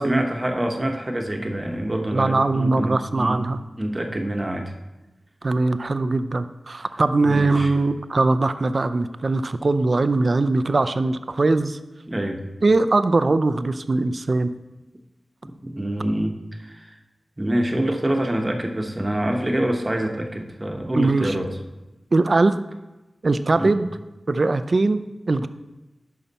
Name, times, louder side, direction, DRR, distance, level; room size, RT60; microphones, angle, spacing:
voice 1, 0.0-3.4 3.8-4.7 7.3-7.7 12.1-12.4 15.4-17.0 17.4-21.6 23.6-23.7, right 1 dB, 25° right, 3 dB, 1.0 m, -26 dB
voice 2, 2.1-3.6 5.4-11.8 12.6-14.5 20.9-21.4 22.1-22.6 23.2-23.9 24.3-25.0 25.3-25.5, right 3 dB, 50° right, 12 dB, 0.4 m, -21 dB
11.0 x 5.7 x 4.2 m, 1.1 s
wide cardioid pair, 80°, 0 cm